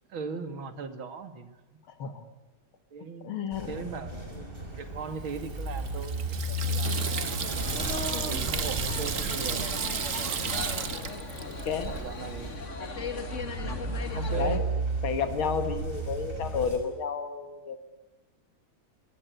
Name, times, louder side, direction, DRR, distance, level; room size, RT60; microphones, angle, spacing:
voice 1, 0.1-1.5 2.9-7.4 8.1-9.7 10.1-10.4 11.7-12.8 13.6-14.9, right 5 dB, 75° right, 9 dB, 2.9 m, -39 dB
voice 2, 1.9-2.2 3.2-3.9 8.1-8.3 10.9-11.1 11.5-11.9 14.3-14.7 15.0-17.8, left 6 dB, 80° left, 9 dB, 2.7 m, -32 dB
sound 1, 3.5-16.8, right 1 dB, 25° right, 5.5 m, -34 dB
Water tap faucet / Sink (filling or washing), 5.3-12.0, right 7 dB, 45° right, 1.4 m, -34 dB
sound 2, 6.8-14.6, left 4 dB, 35° left, 2.1 m, -38 dB
23.5 x 20.0 x 9.5 m, 1.1 s
omnidirectional pair, 2.2 m